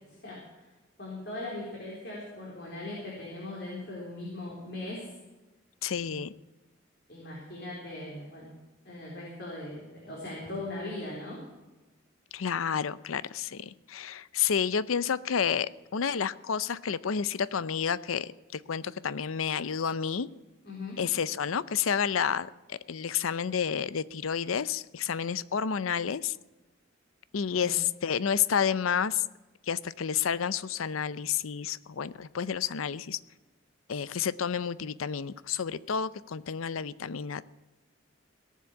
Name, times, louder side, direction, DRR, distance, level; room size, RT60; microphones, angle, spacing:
voice 1, 0.1-0.4 1.0-5.1 6.0-6.1 7.1-8.5 8.8-11.4 20.6-21.0 27.4-27.8, left 2 dB, 55° left, -4 dB, 4.1 m, -39 dB
voice 2, 5.8-6.3 12.3-20.3 21.0-26.4 27.3-29.2 29.7-33.2 33.9-37.4, left 7 dB, 85° left, 17 dB, 0.6 m, -30 dB
18.0 x 7.4 x 8.5 m, 1.1 s
head